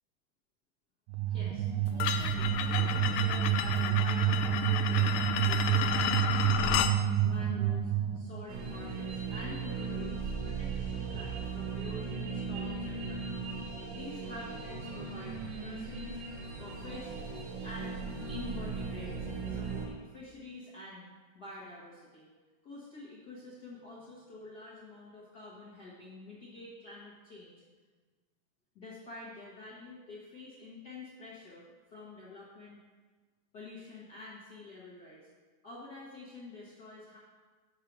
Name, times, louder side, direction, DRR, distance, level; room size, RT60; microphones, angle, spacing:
sound 1, 1.1-8.5, right 10 dB, 80° right, 2.2 m, -29 dB
voice 1, 1.3-5.2 5.5-6.9 7.2-13.4 13.9-16.2 16.6-17.1 17.6-18.0 18.3-21.1 21.3-22.3 22.6-27.6 28.7-31.6 31.9-32.8 33.5-35.3 35.6-37.2, left 2 dB, 55° left, -7 dB, 1.1 m, -48 dB
sound 2, 2.0-7.0, left 9 dB, 85° left, 2.2 m, -32 dB
sound 3, 8.5-19.9, right 4 dB, 65° right, 2.7 m, -38 dB
6.6 x 6.5 x 6.0 m, 1.4 s
omnidirectional pair, 4.0 m